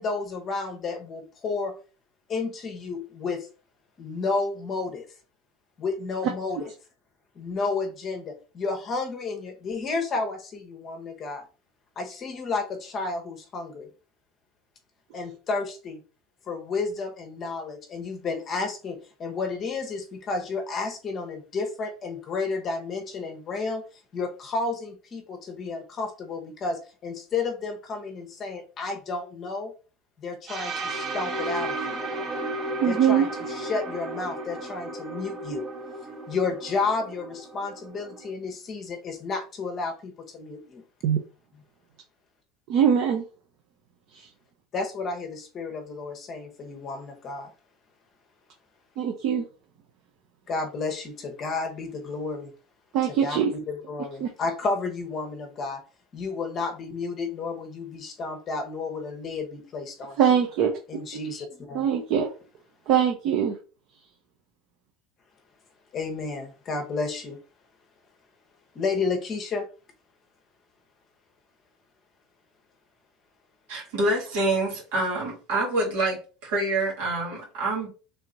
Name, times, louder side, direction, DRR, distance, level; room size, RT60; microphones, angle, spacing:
voice 1, 0.0-1.8 2.3-3.5 4.0-5.1 5.8-6.7 7.4-11.4 12.0-13.9 15.1-16.0 16.5-23.8 24.1-29.7 30.2-32.0 32.8-33.3 33.6-35.7 36.3-40.8 44.7-47.5 50.5-52.5 53.2-53.4 53.7-55.8 56.1-60.2 60.9-61.9 65.9-67.4 68.7-69.7, left 4 dB, 30° left, 0.9 m, -31 dB
sound 1, 30.5-38.3, right 2 dB, 35° right, 1.2 m, -34 dB
voice 2, 32.8-33.3 41.0-41.2 42.7-43.2 44.1-44.3 49.0-49.4 52.9-53.5 54.2-54.3 60.2-60.7 61.7-62.3 62.9-63.5, right 8 dB, 50° right, 0.7 m, -22 dB
voice 3, 73.7-77.9, right 2 dB, 80° right, 2.1 m, -26 dB
3.4 x 3.1 x 3.9 m
cardioid pair, 155°, 0 cm